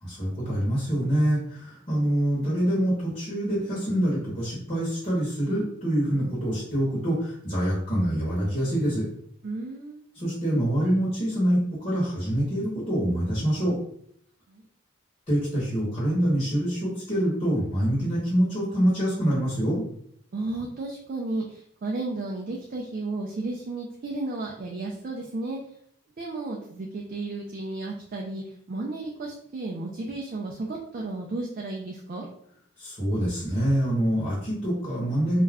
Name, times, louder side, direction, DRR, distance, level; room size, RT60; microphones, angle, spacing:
voice 1, 0.0-9.0 10.1-13.8 15.3-19.8 32.8-35.4, equal, 30° left, -9 dB, 1.0 m, -25 dB
voice 2, 9.4-10.0 14.5-14.6 20.3-25.6 26.2-32.3, right 2 dB, 45° right, -1 dB, 0.3 m, -33 dB
2.4 x 2.1 x 3.4 m, 0.67 s
head